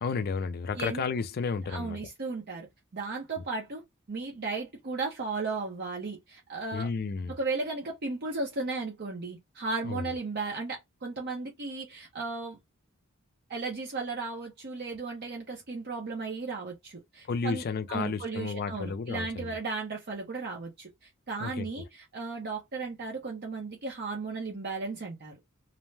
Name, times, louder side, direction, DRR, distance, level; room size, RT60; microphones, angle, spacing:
voice 1, 0.0-2.0 6.7-7.3 9.8-10.0 17.3-19.6 21.4-21.7, left 5 dB, 45° left, 0.4 m, -32 dB
voice 2, 1.7-2.7 2.9-3.8 4.1-6.9 7.3-12.6 13.5-25.3, right 3 dB, 50° right, 0.7 m, -35 dB
2.6 x 2.1 x 3.2 m
head